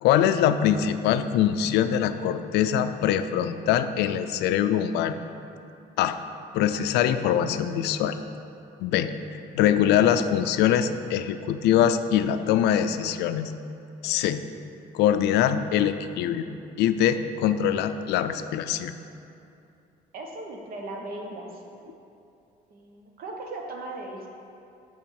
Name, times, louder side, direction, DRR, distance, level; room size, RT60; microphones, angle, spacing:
voice 1, 0.0-5.2 6.0-6.2 6.5-8.2 8.8-9.1 9.6-13.5 14.0-14.4 14.9-16.4 16.8-18.9, left 10 dB, 85° left, 10 dB, 0.4 m, -23 dB
voice 2, 20.1-21.8 22.7-24.3, right 2 dB, 60° right, 1 dB, 1.2 m, -38 dB
8.5 x 3.5 x 6.4 m, 2.6 s
cardioid pair, 110°, 17 cm